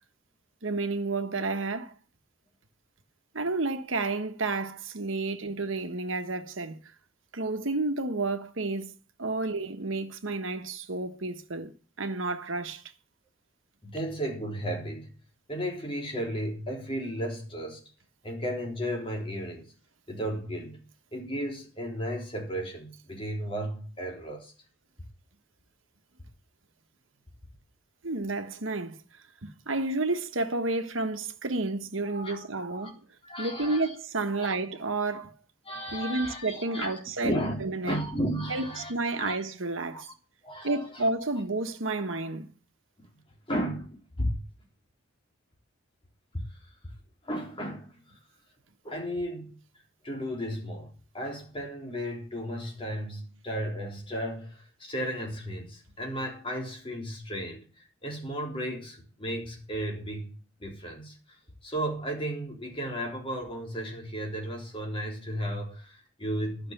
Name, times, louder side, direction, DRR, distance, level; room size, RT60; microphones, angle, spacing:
voice 1, 0.6-1.9 3.3-6.8 7.3-8.9 9.2-11.7 12.0-12.8 28.0-29.0 29.4-33.0 33.4-35.3 35.9-38.0 38.5-40.1 40.6-42.5, right 3 dB, 85° right, 1.4 m, -31 dB
voice 2, 13.8-15.1 15.5-17.8 18.2-19.7 20.1-20.8 21.1-24.5 32.0-32.9 33.2-33.9 34.3-34.5 35.6-36.9 37.2-38.9 39.2-39.4 39.9-40.1 40.4-41.1 43.5-44.4 46.3-46.4 47.2-48.0 48.8-49.6 50.0-57.6 58.0-60.3 60.6-61.4 61.6-66.7, equal, 25° left, 3.6 m, -34 dB
11.5 x 6.7 x 7.9 m
head